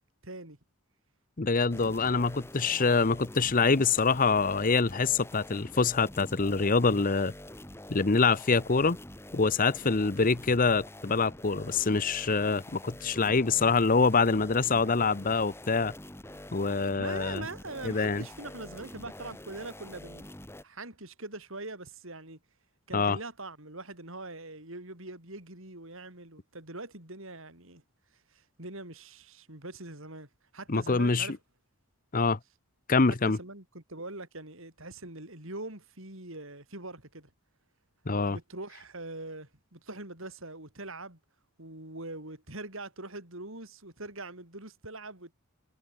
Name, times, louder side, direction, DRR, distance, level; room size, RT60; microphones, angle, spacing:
voice 1, 0.2-0.6 2.7-3.0 9.8-10.1 13.5-14.0 17.0-20.3 20.6-22.4 22.9-27.8 28.3-31.4 33.3-37.3 38.3-41.2 41.6-45.3, right 2 dB, 60° right, 5.0 m, -43 dB
voice 2, 1.4-7.3 7.9-9.0 9.3-15.9 16.5-17.4 17.8-18.2 22.9-23.2 30.7-31.3 32.1-32.4 32.9-33.4 38.1-38.4, left 4 dB, 40° left, 0.8 m, -25 dB
sound 1, 1.7-20.6, left 1 dB, 10° left, 2.1 m, -46 dB
head